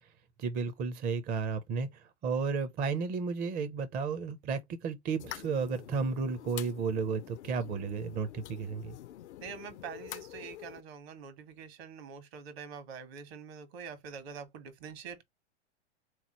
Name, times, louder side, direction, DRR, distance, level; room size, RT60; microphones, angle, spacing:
voice 1, 0.4-9.0, right 5 dB, 25° right, 0.6 m, -33 dB
sound 1, 5.2-10.8, left 13 dB, 75° left, 0.5 m, -47 dB
voice 2, 9.4-15.2, right 6 dB, 60° right, 1.5 m, -45 dB
3.7 x 3.1 x 2.9 m
hypercardioid pair, 110°, 35 cm